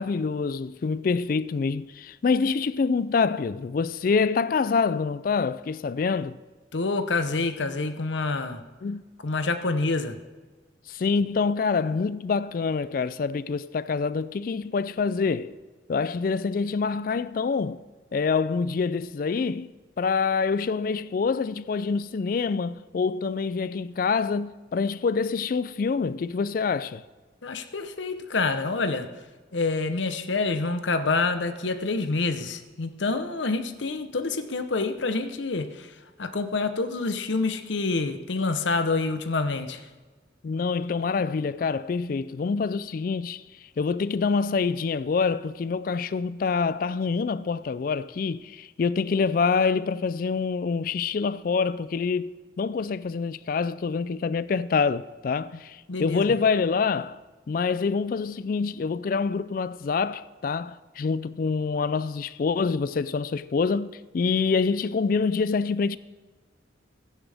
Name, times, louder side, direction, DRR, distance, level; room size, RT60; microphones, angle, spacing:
voice 1, 0.0-6.4 8.8-9.0 10.9-15.5 15.9-17.8 18.1-19.7 20.0-27.0 40.4-43.4 43.8-57.2 57.5-66.0, left 5 dB, 45° left, 0.3 m, -26 dB
voice 2, 6.7-8.6 9.2-10.1 27.4-29.1 29.5-35.9 36.2-39.8 55.9-56.3, left 3 dB, 75° left, 0.8 m, -27 dB
15.0 x 10.0 x 3.4 m
head